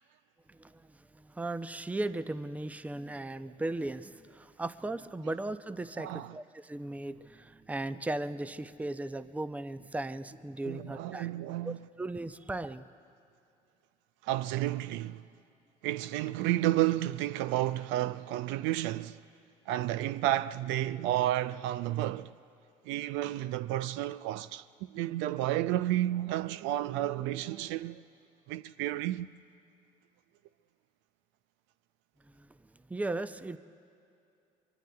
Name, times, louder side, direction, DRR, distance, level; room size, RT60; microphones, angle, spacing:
voice 1, 0.5-11.3 11.6-12.9 32.3-32.5 32.9-33.6, right 2 dB, 5° right, 0.5 m, -37 dB
voice 2, 6.0-6.4 10.6-11.8 14.2-15.2 15.8-19.2 19.7-22.3 22.9-24.7 24.9-28.0 28.5-29.3, right 14 dB, 65° right, 0.4 m, -31 dB
24.0 x 23.5 x 2.3 m
hypercardioid pair, 65°, 21 cm